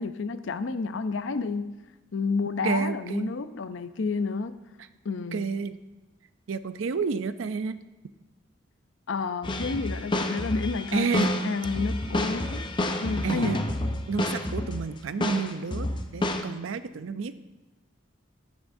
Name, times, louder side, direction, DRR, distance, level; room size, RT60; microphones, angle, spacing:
voice 1, 0.0-1.7 2.1-4.6 5.0-5.5 9.1-12.7 13.0-13.6, left 4 dB, 70° left, 12 dB, 0.5 m, -30 dB
voice 2, 2.6-3.3 4.8-4.9 5.3-5.8 6.5-7.8 10.9-11.3 13.2-13.7 14.1-17.3, right 5 dB, 80° right, 13 dB, 0.5 m, -30 dB
sound 1, 9.4-14.9 15.2-16.4, left 1 dB, 25° left, 0.6 m, -29 dB
11.5 x 9.7 x 2.7 m, 1.1 s
head